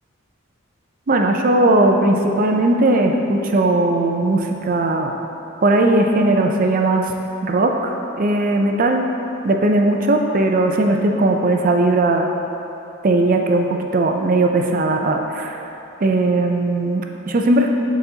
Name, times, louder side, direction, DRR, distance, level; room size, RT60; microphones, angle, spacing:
voice 1, 1.1-5.1 5.6-7.1 7.4-9.0 9.4-12.3 13.0-15.6 16.0-17.7, right 2 dB, 45° right, 3 dB, 0.4 m, -18 dB
9.0 x 4.1 x 2.8 m, 3.0 s
head